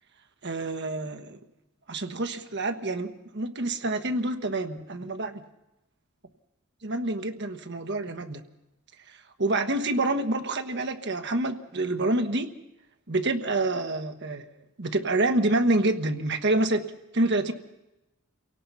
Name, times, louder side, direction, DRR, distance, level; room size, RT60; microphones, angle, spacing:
voice 1, 0.4-1.4 1.9-5.4 6.8-8.4 9.1-12.5 13.1-14.4 14.8-16.8 17.1-17.5, right 2 dB, 55° right, 7 dB, 1.3 m, -27 dB
27.5 x 17.5 x 5.7 m, 0.94 s
head